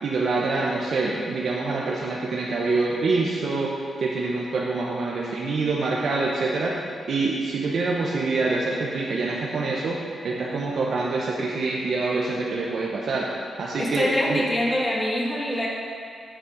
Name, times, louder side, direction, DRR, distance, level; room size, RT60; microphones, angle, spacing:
voice 1, 0.0-10.0 10.2-14.4, right 3 dB, 65° right, -4 dB, 1.0 m, -26 dB
voice 2, 13.8-15.7, left 1 dB, 15° left, -3 dB, 1.8 m, -24 dB
8.2 x 7.5 x 5.1 m, 2.3 s
cardioid pair, 105°, 0 cm